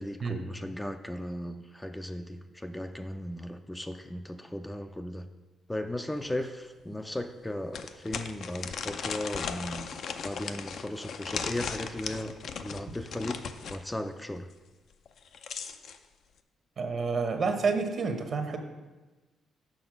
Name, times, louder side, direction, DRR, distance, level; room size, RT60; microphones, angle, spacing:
voice 1, 0.0-5.3 5.7-9.9 10.2-14.5, left 1 dB, 10° left, 7 dB, 0.4 m, -36 dB
sound 1, 6.2-6.3 6.8-6.9 7.7-13.8 15.1-16.0, left 6 dB, 65° left, 0.5 m, -37 dB
voice 2, 16.8-18.6, right 4 dB, 50° right, 6 dB, 1.0 m, -29 dB
6.8 x 6.2 x 5.0 m, 1.2 s
cardioid pair, 90°, 0 cm